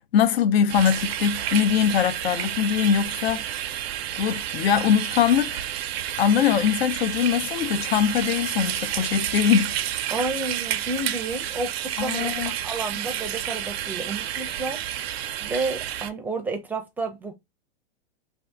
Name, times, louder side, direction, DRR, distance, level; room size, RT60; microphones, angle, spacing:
voice 1, 0.0-3.4 4.2-5.7 6.2-9.7 12.0-12.5, left 8 dB, 85° left, 0.5 m, -22 dB
sound 1, 0.7-16.1, right 11 dB, 80° right, 0.5 m, -30 dB
voice 2, 10.1-14.8 15.4-17.3, right 2 dB, 5° right, 0.4 m, -31 dB
2.7 x 2.4 x 3.3 m
hypercardioid pair, 135°, 30 cm